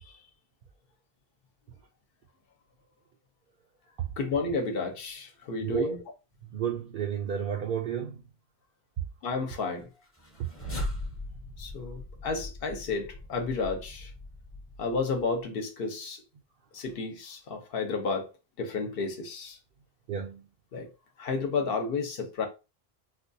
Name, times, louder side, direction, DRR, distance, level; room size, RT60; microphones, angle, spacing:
voice 1, 4.2-6.0 9.2-9.9 11.6-14.1 14.8-16.2 16.7-18.3 18.6-19.6 20.7-20.9 21.2-22.5, left 4 dB, 65° left, 1.0 m, -31 dB
voice 2, 5.6-6.0 6.5-8.2 10.4-10.7 20.1-20.5, right 8 dB, 60° right, 0.7 m, -32 dB
sound 1, 10.1-15.4, left 2 dB, 15° left, 0.6 m, -40 dB
4.1 x 2.3 x 2.6 m
omnidirectional pair, 1.1 m